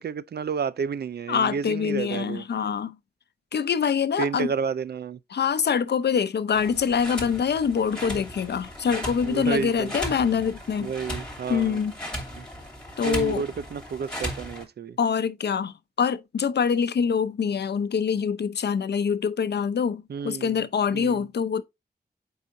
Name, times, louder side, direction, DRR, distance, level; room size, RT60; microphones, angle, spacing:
voice 1, 0.0-2.4 4.2-5.2 9.2-9.9 10.8-11.8 12.3-12.5 13.0-15.0 20.1-20.6 20.9-21.3, right 6 dB, 75° right, 0.5 m, -31 dB
voice 2, 1.3-3.0 3.5-4.5 5.3-10.9 11.5-11.9 13.0-13.4 15.0-21.6, left 6 dB, 85° left, 0.6 m, -25 dB
sound 1, 6.5-14.6, equal, 5° left, 2.6 m, -36 dB
7.5 x 4.8 x 2.6 m
wide cardioid pair, 120°, 17 cm